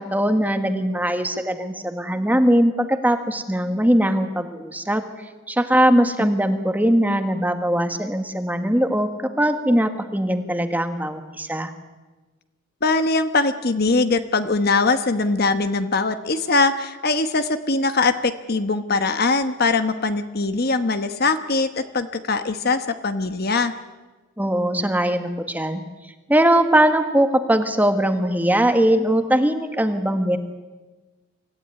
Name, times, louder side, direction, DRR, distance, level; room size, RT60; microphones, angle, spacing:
voice 1, 0.0-5.0 5.5-11.7 24.4-25.8 26.3-30.4, right 1 dB, 10° right, 7 dB, 1.5 m, -20 dB
voice 2, 12.8-23.7, left 3 dB, 50° left, 10 dB, 1.1 m, -21 dB
25.5 x 15.0 x 9.8 m, 1.2 s
head